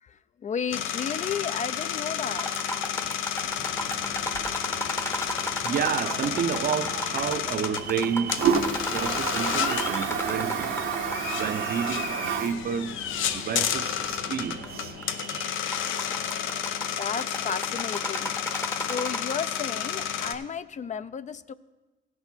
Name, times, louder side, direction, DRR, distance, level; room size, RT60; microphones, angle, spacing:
voice 1, 0.0-2.5 17.0-18.4 18.7-21.5, left 7 dB, 40° left, 0.4 m, -33 dB
sound 1, 0.7-20.3, left 9 dB, 85° left, 0.6 m, -31 dB
sound 2, 2.3-11.4 11.6-11.7 12.5-12.6 13.2-13.3 14.4-14.7 15.0-15.3 15.5-19.6, equal, 15° left, 0.8 m, -34 dB
Toilet flush, 3.4-15.0, right 7 dB, 80° right, 0.8 m, -33 dB
voice 2, 5.3-10.8 11.3-13.0 13.3-15.5, right 7 dB, 50° right, 0.5 m, -31 dB
16.0 x 6.1 x 4.4 m
cardioid pair, 90°, 20 cm